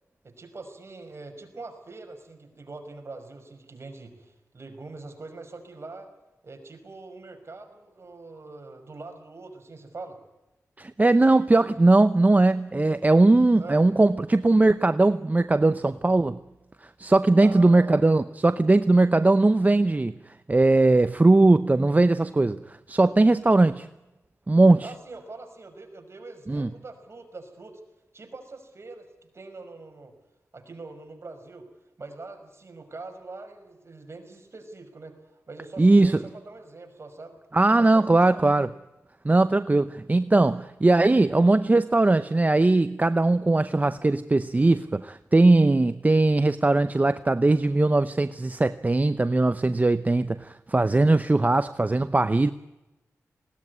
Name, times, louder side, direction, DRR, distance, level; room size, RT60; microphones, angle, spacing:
voice 1, 0.2-6.1 6.4-10.2 13.6-13.8 17.4-18.0 24.8-27.8 28.1-29.1 29.3-30.1 30.5-31.7 32.0-35.1 35.5-37.4 37.8-37.9 38.2-38.5, right 3 dB, 50° right, 4 dB, 5.6 m, -43 dB
voice 2, 10.8-16.4 17.0-20.1 20.5-23.9 24.5-24.9 26.5-26.7 35.8-36.2 37.5-38.7 39.2-52.5, right 2 dB, 30° right, 12 dB, 0.7 m, -20 dB
20.0 x 18.0 x 9.6 m, 1.0 s
cardioid pair, 65°, 6 cm